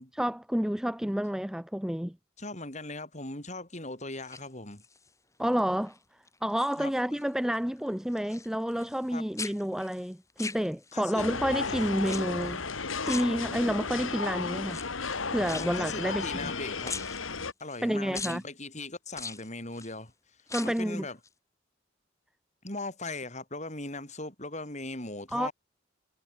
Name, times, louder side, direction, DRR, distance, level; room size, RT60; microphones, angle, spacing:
voice 1, 0.1-2.2 5.4-6.0 6.4-12.6 13.1-14.8 15.3-16.2 17.8-18.4 20.5-21.1 25.3-25.5, equal, 5° right, 0.4 m, -29 dB
voice 2, 2.4-4.8 6.8-7.2 9.1-9.3 10.9-11.3 11.7-11.8 15.6-17.0 17.6-20.1 20.6-21.2 22.6-25.5, left 2 dB, 35° left, 7.4 m, -39 dB
sound 1, 4.1-5.1 5.6-6.0 6.3-7.3 7.6-9.1 9.4-11.1 12.0-12.6 13.0-13.9 14.6-16.6 16.8-17.8 18.1-18.4 19.1-19.9 20.4-20.9 21.2-21.3, left 4 dB, 15° left, 7.2 m, -42 dB
sound 2, 11.2-17.5, left 4 dB, 85° left, 2.4 m, -34 dB
head